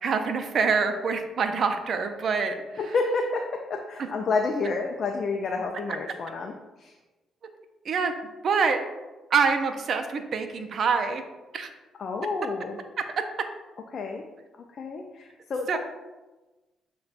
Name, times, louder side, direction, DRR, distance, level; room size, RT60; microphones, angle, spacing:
voice 1, 0.0-2.6 7.9-8.1 8.4-8.8 9.3-11.2 11.5-11.7 15.7-15.8, right 5 dB, 55° right, 6 dB, 0.4 m, -25 dB
voice 2, 2.8-6.9 12.0-12.8 13.9-14.3 14.7-15.8, left 3 dB, 55° left, 2 dB, 0.3 m, -29 dB
6.6 x 2.2 x 2.4 m, 1.1 s
cardioid pair, 90°, 0 cm